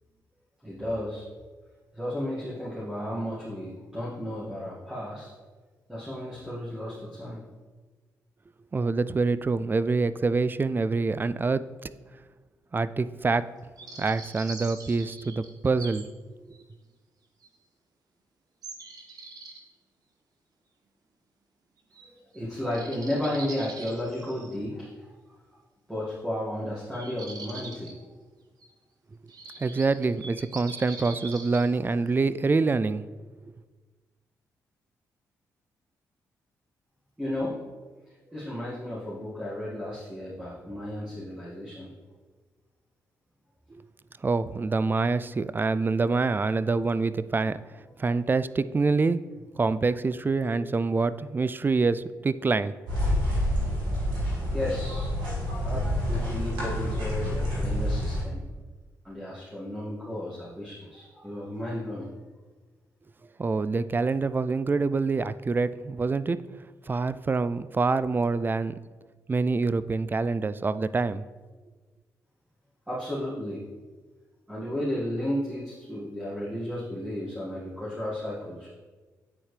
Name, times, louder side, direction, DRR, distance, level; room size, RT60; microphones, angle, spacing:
voice 1, 0.6-1.2 1.9-5.3 5.9-7.4 22.3-25.1 25.9-27.9 37.2-37.6 38.3-41.9 54.3-55.3 55.6-58.4 59.0-62.1 72.9-73.6 74.5-78.7, left 1 dB, 10° right, -8 dB, 2.0 m, -33 dB
voice 2, 8.7-11.6 12.7-13.5 14.0-16.1 29.6-33.0 43.7-43.8 44.2-47.6 48.0-49.2 49.6-52.7 63.4-66.4 66.9-68.8 69.3-71.2, right 4 dB, 30° right, 15 dB, 0.3 m, -26 dB
sound 1, 13.8-16.0 16.5-16.6 17.4-17.5 18.6-19.6 21.9-22.1 22.3-22.4 22.7-24.6 26.8-27.9 28.6-28.7 29.3-31.7, right 3 dB, 60° right, 1.1 m, -43 dB
sound 2, 52.9-58.2, equal, 85° right, 1.8 m, -28 dB
8.9 x 4.4 x 3.3 m, 1.4 s
supercardioid pair, 50°, 7 cm